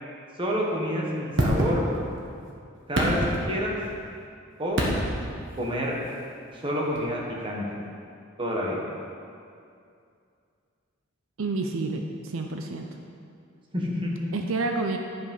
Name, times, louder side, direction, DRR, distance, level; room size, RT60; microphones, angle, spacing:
voice 1, 0.4-1.9 2.9-3.7 4.6-4.8 5.6-6.0 6.5-7.6 8.4-8.8 13.7-14.3, equal, 25° right, -3 dB, 1.4 m, -28 dB
sound 1, 1.4-2.3 2.8-4.0 4.7-5.4 7.0-7.1, equal, 65° right, 1.5 m, -26 dB
voice 2, 11.4-12.9 14.3-15.0, right 3 dB, 80° right, 3 dB, 0.6 m, -29 dB
11.0 x 5.0 x 5.4 m, 2.4 s
head